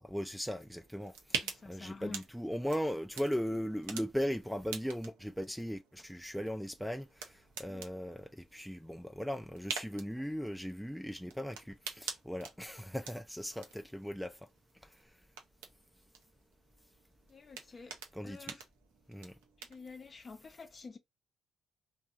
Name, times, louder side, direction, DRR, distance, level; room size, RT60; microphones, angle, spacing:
voice 1, 0.0-7.3 7.6-14.3 18.1-18.5 19.1-19.3, equal, ahead, 0.4 m, -38 dB
sound 1, 0.6-19.9, right 7 dB, 90° right, 0.5 m, -47 dB
voice 2, 1.3-2.3 7.7-7.9 17.3-18.0 18.2-18.7 19.6-21.0, left 4 dB, 45° left, 0.7 m, -49 dB
2.7 x 2.7 x 2.3 m
hypercardioid pair, 45°, 0 cm